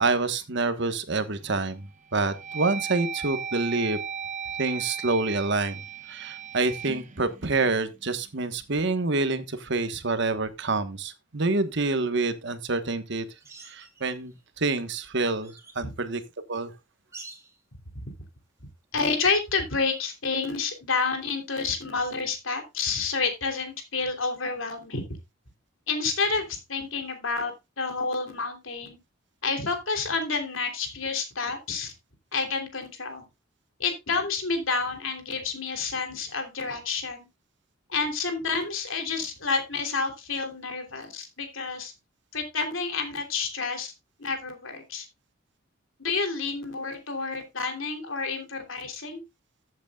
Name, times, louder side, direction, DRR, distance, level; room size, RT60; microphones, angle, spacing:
voice 1, 0.0-4.0 4.6-5.8 6.1-13.2 13.6-16.2 16.5-16.7, right 3 dB, 60° right, 1.3 m, -27 dB
sound 1, 1.1-1.6 2.1-8.2, right 7 dB, 35° right, 1.1 m, -37 dB
sound 2, 13.4-14.4 14.9-15.8 17.1-17.6 19.9-20.0, right 3 dB, 15° right, 2.5 m, -48 dB
voice 2, 18.9-25.0 25.9-29.0 29.4-31.9 32.3-33.2 33.8-37.3 37.9-41.9 42.3-43.9 44.2-45.1 46.0-49.2, left 4 dB, 75° left, 3.2 m, -29 dB
14.0 x 8.2 x 2.3 m
head